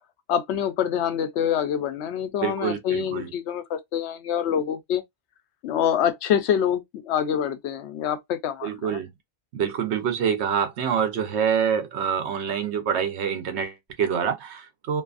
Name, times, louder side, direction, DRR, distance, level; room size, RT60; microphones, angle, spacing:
voice 1, 0.3-5.0 5.6-9.0, left 9 dB, 80° left, 0.9 m, -26 dB
voice 2, 2.4-3.3 8.6-9.1 9.5-15.0, right 7 dB, 90° right, 1.0 m, -26 dB
2.7 x 2.4 x 2.4 m
omnidirectional pair, 1.1 m